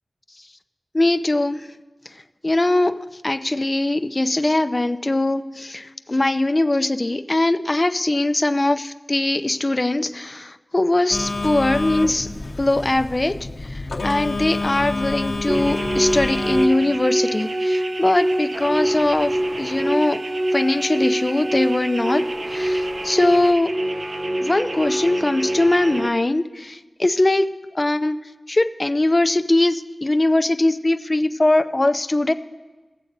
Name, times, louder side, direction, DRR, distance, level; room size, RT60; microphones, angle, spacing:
voice 1, 0.9-1.6 2.4-3.0 3.2-12.3 12.6-13.4 13.7-20.2 20.5-22.2 22.5-23.7 24.4-27.5 27.7-28.2 28.5-32.3, left 2 dB, 30° left, 10 dB, 0.4 m, -21 dB
Telephone, 11.1-16.7, left 2 dB, 85° left, 1.0 m, -28 dB
sound 1, 15.5-26.1, right 1 dB, 60° right, 0.6 m, -25 dB
22.0 x 8.1 x 2.6 m, 1.3 s
wide cardioid pair, 80°, 0 cm